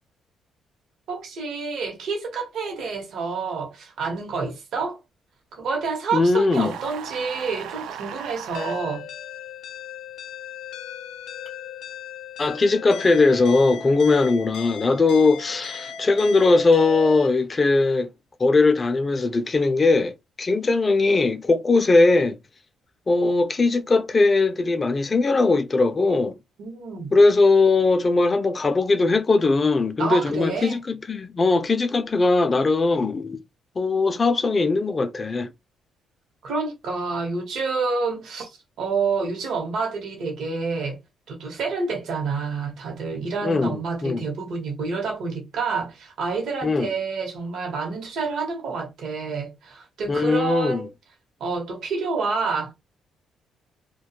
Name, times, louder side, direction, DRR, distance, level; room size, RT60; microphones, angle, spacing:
voice 1, 1.1-5.0 5.5-9.1 26.6-27.2 30.0-30.8 36.4-38.5 38.8-41.0 41.3-50.9 51.4-52.7, right 4 dB, 70° right, 0.9 m, -28 dB
voice 2, 6.1-6.7 12.4-18.1 18.4-22.4 23.1-26.4 27.1-33.4 33.8-35.5 43.4-44.2 46.6-46.9 50.1-50.9, left 3 dB, 25° left, 0.3 m, -20 dB
sound 1, 6.5-8.8, right 9 dB, 85° right, 0.3 m, -37 dB
sound 2, 8.5-17.3, left 7 dB, 80° left, 0.5 m, -37 dB
2.3 x 2.2 x 2.7 m
cardioid pair, 120°, 0 cm